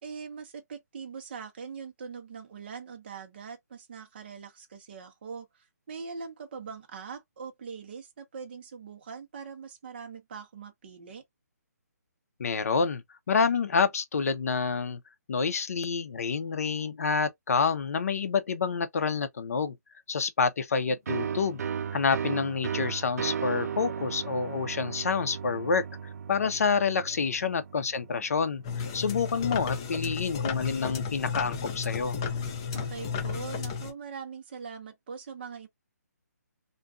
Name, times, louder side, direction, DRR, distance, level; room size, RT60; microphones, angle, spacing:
voice 1, 0.0-11.2 27.1-27.3 32.7-35.7, right 5 dB, 35° right, 0.7 m, -42 dB
voice 2, 12.4-15.0 15.3-19.7 20.1-21.6 21.9-25.8 26.3-28.6 28.9-32.2, left 5 dB, 55° left, 0.6 m, -28 dB
sound 1, 21.1-28.5, right 7 dB, 65° right, 0.3 m, -35 dB
sound 2, 28.6-33.9, left 6 dB, 15° left, 0.3 m, -33 dB
2.5 x 2.3 x 2.3 m
hypercardioid pair, 170°, 9 cm